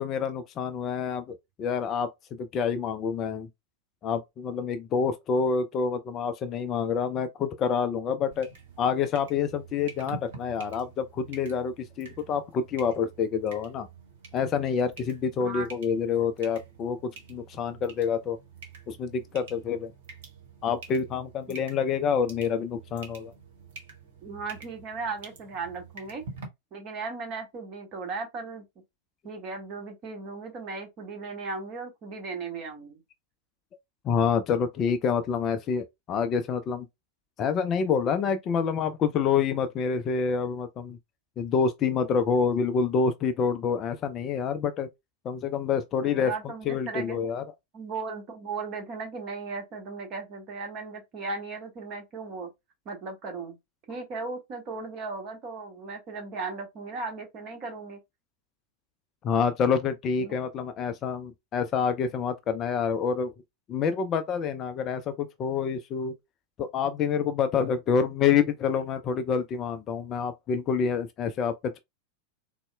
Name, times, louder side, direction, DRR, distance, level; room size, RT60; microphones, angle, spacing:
voice 1, 0.0-3.5 4.0-8.5 8.8-13.9 14.3-18.4 18.9-19.9 20.6-23.3 34.0-36.9 37.4-41.0 41.4-44.9 45.2-46.3 46.7-47.4 59.2-63.3 63.7-66.1 66.6-71.8, left 6 dB, 30° left, 0.4 m, -27 dB
sound 1, 8.3-26.5, right 4 dB, 55° right, 1.0 m, -47 dB
voice 2, 24.2-26.3 26.7-28.6 29.2-33.0 46.0-47.3 47.7-52.5 52.8-53.6 53.9-58.0 60.2-60.3, right 4 dB, 35° right, 1.1 m, -36 dB
4.0 x 2.0 x 2.2 m
figure-of-eight pair, 90°, 0 cm